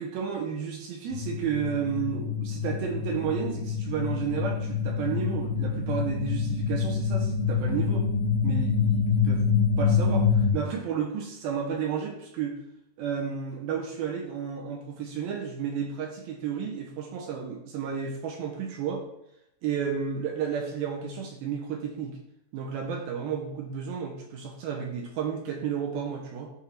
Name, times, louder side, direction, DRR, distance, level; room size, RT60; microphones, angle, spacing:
voice 1, 0.0-8.1 8.4-9.4 9.8-12.6 13.0-19.0 19.6-22.2 22.5-26.5, right 7 dB, 75° right, 1 dB, 2.3 m, -32 dB
sound 1, 1.1-10.5, left 6 dB, 80° left, 2.2 m, -26 dB
10.0 x 3.6 x 4.4 m, 0.79 s
omnidirectional pair, 5.2 m